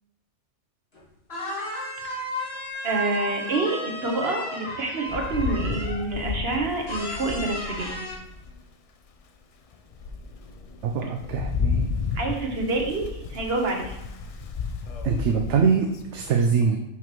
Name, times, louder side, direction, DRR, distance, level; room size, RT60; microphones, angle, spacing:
sound 1, 0.9-1.0 1.3-6.1 6.9-8.1, left 1 dB, 55° left, 1.9 m, -34 dB
voice 1, 2.8-8.0 12.1-14.0, right 3 dB, 55° right, 2 dB, 1.3 m, -27 dB
Rain, 5.1-8.6 9.1-9.2 9.7-16.3, left 5 dB, 70° left, 0.3 m, -32 dB
voice 2, 10.8-11.9 15.0-15.9 16.1-16.8, right 6 dB, 70° right, 4 dB, 0.8 m, -23 dB
5.8 x 5.8 x 3.0 m, 0.88 s
omnidirectional pair, 1.3 m